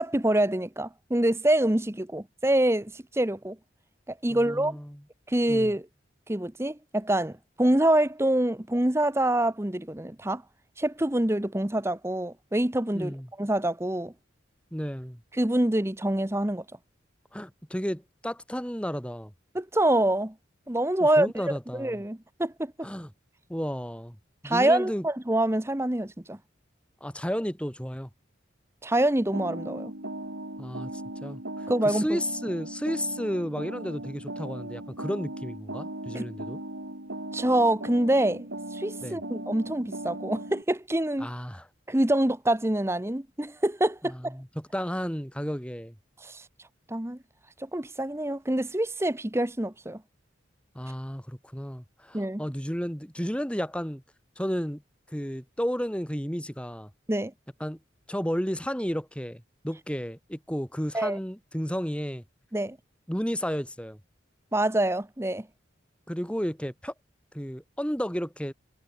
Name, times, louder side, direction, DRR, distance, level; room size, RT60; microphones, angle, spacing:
voice 1, 0.0-3.6 4.1-4.8 5.3-5.9 6.3-10.4 10.8-14.1 15.4-16.6 19.5-20.3 20.7-22.9 24.4-26.4 28.8-29.9 31.7-32.2 36.1-36.3 37.3-38.5 38.7-41.3 41.9-44.3 46.2-46.4 46.9-47.2 47.6-50.0 52.1-52.4 57.1-57.3 60.9-61.2 62.5-62.8 64.5-65.5, right 1 dB, 15° right, 0.9 m, -26 dB
voice 2, 4.3-5.0 5.5-5.7 12.9-13.3 14.7-15.2 17.3-19.3 21.0-22.0 22.8-23.1 23.5-24.2 24.4-25.0 27.0-28.1 30.6-36.6 39.0-39.2 41.2-41.7 44.0-46.0 50.7-54.0 54.4-54.8 55.1-56.9 57.6-57.8 58.1-62.2 63.1-64.0 66.1-66.9 67.3-68.5, equal, 5° left, 3.9 m, -32 dB
sound 1, 29.3-40.6, right 1 dB, 70° right, 5.5 m, -38 dB
head